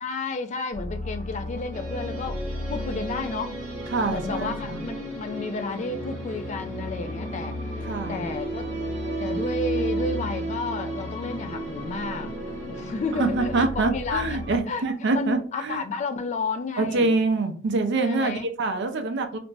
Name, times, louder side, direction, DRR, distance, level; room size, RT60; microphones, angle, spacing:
voice 1, 0.0-2.4 2.7-3.5 4.1-8.6 9.2-12.3 12.7-14.2 14.5-14.8 15.1-17.1 18.0-18.5, left 4 dB, 35° left, 0.3 m, -32 dB
sound 1, 0.7-14.6, left 2 dB, 60° left, 1.2 m, -36 dB
sound 2, 1.7-13.6, right 2 dB, 35° right, 0.9 m, -34 dB
voice 2, 3.9-4.8 7.8-8.2 13.2-15.8 16.8-19.4, right 3 dB, 60° right, 0.5 m, -25 dB
2.5 x 2.1 x 3.2 m
head